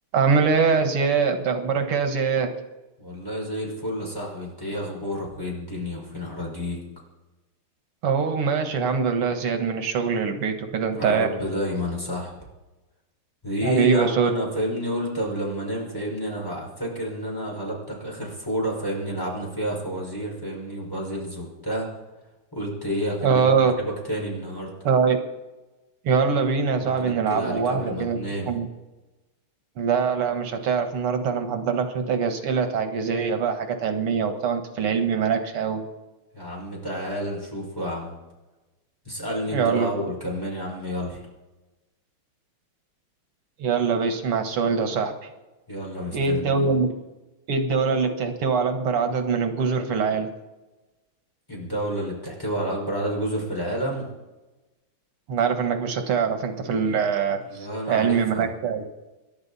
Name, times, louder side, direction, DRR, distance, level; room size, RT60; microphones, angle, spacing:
voice 1, 0.1-2.6 8.0-11.3 13.6-14.3 23.2-23.7 24.9-25.2 26.0-28.2 28.5-28.7 29.8-35.9 39.5-40.1 43.6-45.1 46.1-46.9 47.5-50.3 55.3-57.4 57.9-58.9, right 5 dB, 85° right, 6 dB, 2.4 m, -23 dB
voice 2, 3.0-6.8 11.0-12.3 13.4-21.9 22.5-23.5 23.8-24.7 26.8-28.5 36.3-38.1 39.1-41.2 45.7-46.7 51.5-54.1 56.8-57.0 57.4-58.5, equal, 10° left, -3 dB, 5.5 m, -30 dB
27.5 x 11.5 x 4.2 m, 1.1 s
omnidirectional pair, 2.4 m